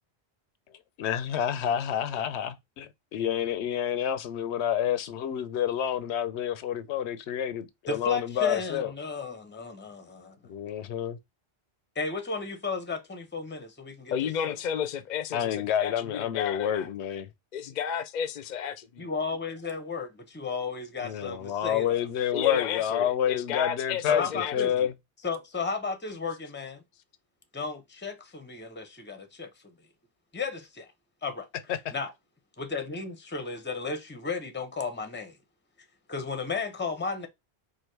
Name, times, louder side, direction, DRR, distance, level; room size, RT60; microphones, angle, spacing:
voice 1, 1.0-8.9 10.5-11.2 15.3-17.3 21.0-24.9 31.7-31.9, left 9 dB, 85° left, 0.9 m, -29 dB
voice 2, 7.9-10.4 12.0-14.1 14.4-14.5 19.0-22.0 24.1-24.7 25.2-26.8 27.5-29.5 30.3-30.9 31.2-31.5 31.9-32.1 32.6-35.4 36.1-37.3, left 4 dB, 10° left, 0.6 m, -34 dB
voice 3, 14.1-16.9 17.5-19.1 22.3-24.9, left 8 dB, 55° left, 0.6 m, -33 dB
4.6 x 2.5 x 4.5 m
omnidirectional pair, 1.1 m